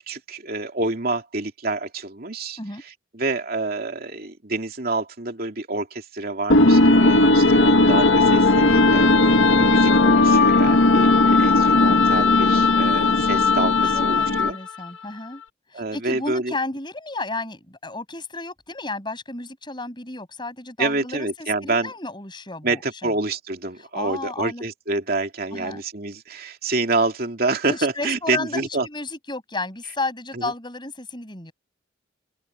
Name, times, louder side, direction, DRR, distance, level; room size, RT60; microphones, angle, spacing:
voice 1, 0.0-14.6 15.7-16.6 20.8-21.9 22.6-28.9 30.3-30.5, right 3 dB, 50° right, 2.9 m, -27 dB
sound 1, 6.5-14.7, left 2 dB, 85° left, 1.5 m, -16 dB
voice 2, 13.9-15.4 15.7-23.1 23.9-24.6 25.5-25.8 27.7-31.5, left 2 dB, 25° left, 7.3 m, -32 dB
open air
head